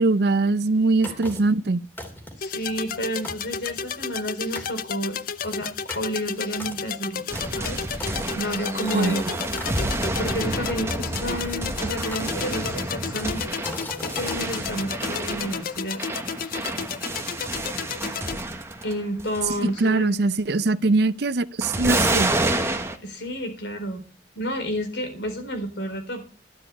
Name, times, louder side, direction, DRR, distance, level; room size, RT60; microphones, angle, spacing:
voice 1, 0.0-1.8 8.9-9.1 19.6-22.3, right 3 dB, 60° right, 0.6 m, -22 dB
sound 1, 1.0-1.6 2.0-2.5 3.0-3.1 3.2-4.3 4.5-4.8 5.3-9.8 10.7-11.6 12.1-12.8 13.3-14.4, equal, 10° left, 2.9 m, -38 dB
voice 2, 1.1-1.5 2.4-5.7 5.9-7.2 7.6-9.5 10.2-13.5 14.0-16.0 18.8-20.2 23.0-24.0 24.4-26.2, equal, 70° left, 4.2 m, -31 dB
sound 2, 2.4-18.4, left 7 dB, 50° left, 0.6 m, -32 dB
sound 3, 7.3-18.9 19.2-19.7 21.6-23.0, right 2 dB, 15° right, 1.3 m, -29 dB
12.5 x 6.6 x 8.5 m
head